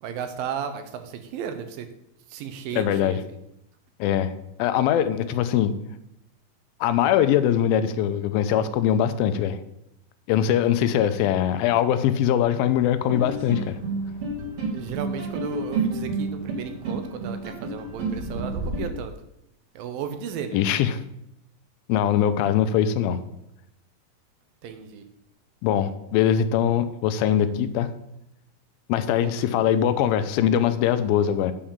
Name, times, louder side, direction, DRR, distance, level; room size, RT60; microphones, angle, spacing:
voice 1, 0.0-1.9 2.3-3.4 14.7-19.1 19.8-20.6 24.6-25.1 29.2-29.8, right 8 dB, 80° right, 8 dB, 2.5 m, -34 dB
voice 2, 2.7-3.2 4.0-4.3 4.6-5.7 6.8-9.6 10.3-13.8 20.5-21.0 21.9-23.2 25.6-27.9 28.9-31.5, left 10 dB, 80° left, 11 dB, 2.4 m, -22 dB
sound 1, 13.1-18.8, right 3 dB, 45° right, 2.8 m, -30 dB
8.9 x 5.0 x 7.2 m, 0.81 s
omnidirectional pair, 4.3 m